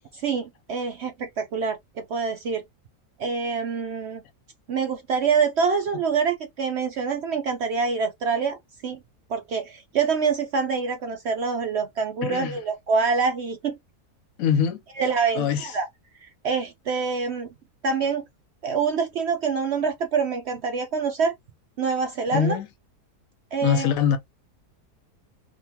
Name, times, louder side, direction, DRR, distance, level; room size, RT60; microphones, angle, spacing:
voice 1, 0.1-2.6 3.2-4.2 4.7-8.6 8.8-9.0 9.3-13.7 15.0-15.9 16.2-17.5 17.8-18.2 18.6-21.3 21.8-22.6 23.5-23.9, right 5 dB, 65° right, 0.6 m, -26 dB
voice 2, 12.2-12.6 14.4-14.8 15.3-15.7 22.3-22.7 23.6-24.2, left 8 dB, 70° left, 1.0 m, -23 dB
3.8 x 2.4 x 2.8 m
omnidirectional pair, 1.6 m